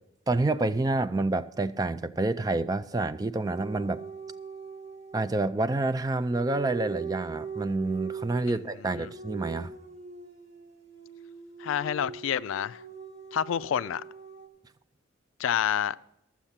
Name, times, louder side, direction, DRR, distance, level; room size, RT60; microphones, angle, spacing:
voice 1, 0.3-4.0 5.1-9.7, right 2 dB, 20° right, 0.3 m, -28 dB
sound 1, 3.5-5.5 6.3-14.5, right 6 dB, 35° right, 1.1 m, -41 dB
voice 2, 11.6-12.8 13.3-14.0 15.4-16.0, left 9 dB, 85° left, 0.3 m, -28 dB
13.0 x 7.2 x 5.8 m
head